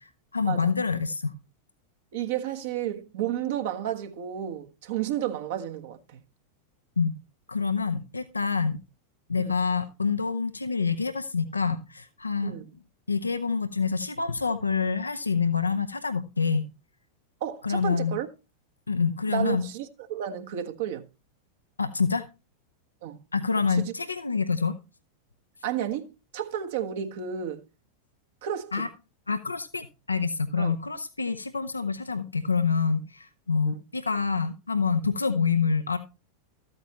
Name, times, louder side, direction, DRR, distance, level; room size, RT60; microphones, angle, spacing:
voice 1, 0.3-1.3 7.0-7.1 7.5-8.8 9.3-12.5 13.1-16.7 17.6-18.2 18.9-19.6 21.8-22.3 23.3-24.8 28.7-28.9 29.3-36.0, left 5 dB, 80° left, 0.7 m, -27 dB
voice 2, 2.1-6.2 9.4-9.5 12.4-12.7 17.4-18.3 19.3-21.1 23.0-23.2 23.7-23.9 25.6-27.6 28.4-28.8 30.6-30.7 33.7-33.8, right 10 dB, 55° right, 1.3 m, -32 dB
13.5 x 8.7 x 2.9 m
figure-of-eight pair, 90°, 0 cm